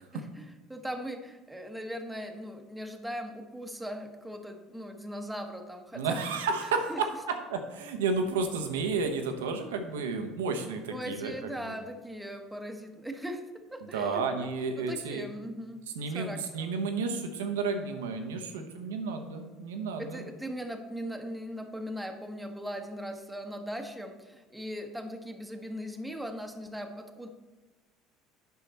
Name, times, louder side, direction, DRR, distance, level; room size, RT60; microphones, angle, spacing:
voice 1, 0.1-6.2 6.9-7.0 10.9-14.5 14.8-15.8 16.1-16.7 20.0-27.3, equal, 5° right, 5 dB, 1.1 m, -39 dB
voice 2, 5.9-11.7 13.8-15.2 15.9-20.3, right 4 dB, 85° right, 6 dB, 1.0 m, -32 dB
9.5 x 5.7 x 4.2 m, 1.2 s
hypercardioid pair, 75°, 0 cm